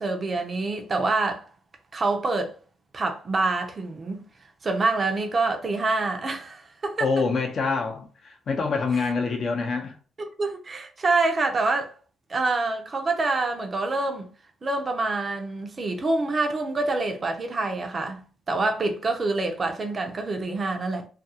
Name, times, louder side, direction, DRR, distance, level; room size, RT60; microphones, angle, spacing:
voice 1, 0.0-1.5 1.9-2.5 2.9-4.2 4.6-7.1 10.4-11.9 12.3-14.3 14.6-21.1, right 3 dB, 35° right, 0.5 m, -26 dB
voice 2, 7.0-10.0, left 4 dB, 55° left, 0.6 m, -26 dB
2.4 x 2.3 x 2.7 m
cardioid pair, 90°, 0 cm